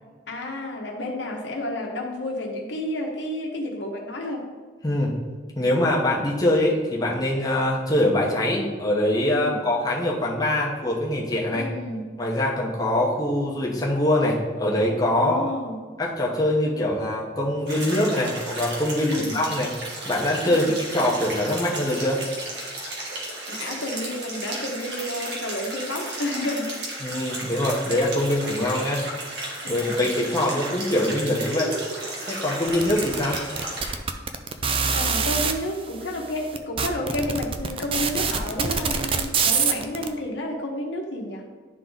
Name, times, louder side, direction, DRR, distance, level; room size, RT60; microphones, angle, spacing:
voice 1, 0.3-4.5 9.3-9.6 11.5-12.0 15.2-15.8 19.0-19.4 20.5-20.7 23.5-26.7 29.6-30.0 34.9-41.4, left 1 dB, 75° left, 0 dB, 1.2 m, -31 dB
voice 2, 4.8-5.1 5.6-11.7 12.2-15.5 16.0-19.7 20.0-22.2 27.0-29.0 29.7-31.7 32.3-33.4, left 1 dB, 20° left, -3 dB, 1.0 m, -23 dB
sound 1, 17.7-33.9, right 1 dB, 65° right, 1.8 m, -34 dB
sound 2, 32.7-35.5 36.2-36.3 36.5-40.1, right 5 dB, 30° right, 0.4 m, -24 dB
11.0 x 3.8 x 3.9 m, 1.4 s
head